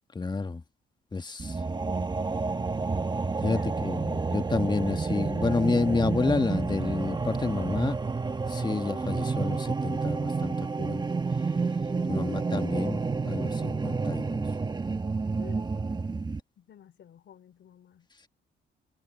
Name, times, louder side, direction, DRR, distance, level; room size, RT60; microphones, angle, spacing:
voice 1, 0.1-0.6 1.1-1.6 3.4-8.0 8.5-11.0 12.1-13.0 13.2-14.4, left 3 dB, 20° left, 1.8 m, -29 dB
sound 1, 1.4-16.4, right 4 dB, 20° right, 1.2 m, -30 dB
voice 2, 1.7-2.1 3.5-4.0 11.9-12.3 15.4-15.7 16.6-18.1, left 10 dB, 65° left, 3.6 m, -52 dB
cardioid pair, 90°, 20 cm